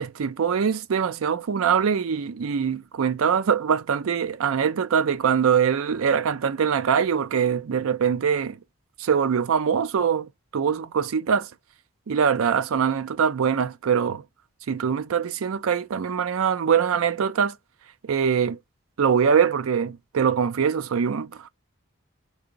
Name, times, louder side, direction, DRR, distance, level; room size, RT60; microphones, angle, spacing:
voice 1, 0.0-8.6 9.0-11.5 12.1-14.2 14.7-17.5 18.0-18.6 19.0-21.5, right 7 dB, 75° right, 0.4 m, -23 dB
4.8 x 3.8 x 2.5 m
head